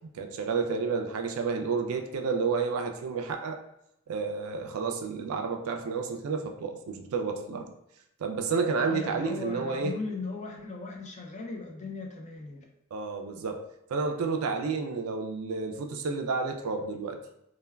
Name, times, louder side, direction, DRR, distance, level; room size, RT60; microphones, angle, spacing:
voice 1, 0.1-3.6 4.1-7.7 8.2-10.0 12.9-17.2, right 4 dB, 70° right, 4 dB, 0.4 m, -30 dB
voice 2, 8.8-12.6, left 3 dB, 35° left, 1 dB, 0.4 m, -37 dB
3.3 x 2.2 x 2.2 m, 0.79 s
head